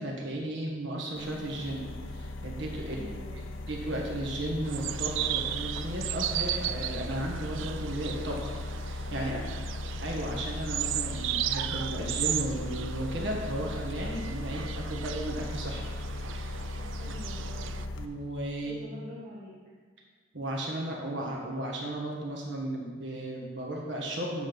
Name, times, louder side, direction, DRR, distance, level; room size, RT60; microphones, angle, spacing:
voice 1, 0.0-3.0 3.3-3.4 3.7-8.5 8.8-9.6 10.0-15.9 16.3-16.7 17.9-18.8 20.3-24.5, right 1 dB, 65° right, -1 dB, 1.5 m, -35 dB
sound 1, 1.1-18.1, left 2 dB, 85° left, 0.7 m, -37 dB
voice 2, 2.9-3.5 9.1-9.5 16.7-17.8 18.6-19.5, left 1 dB, 35° right, -8 dB, 1.9 m, -45 dB
sound 2, 4.6-17.9, right 11 dB, 80° right, 0.4 m, -36 dB
8.2 x 7.5 x 5.3 m, 1.5 s
head